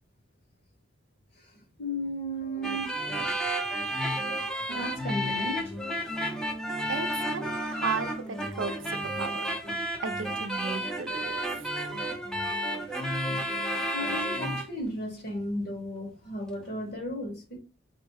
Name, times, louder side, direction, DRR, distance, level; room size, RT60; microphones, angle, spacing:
voice 1, 1.8-2.9 4.7-5.8 13.8-17.6, equal, 55° left, 1.9 m, -34 dB
sound 1, 2.6-14.7, equal, 5° left, 0.6 m, -32 dB
voice 2, 6.2-6.5 6.9-9.5 10.0-11.7, right 5 dB, 80° right, 0.5 m, -35 dB
4.1 x 2.2 x 4.6 m
head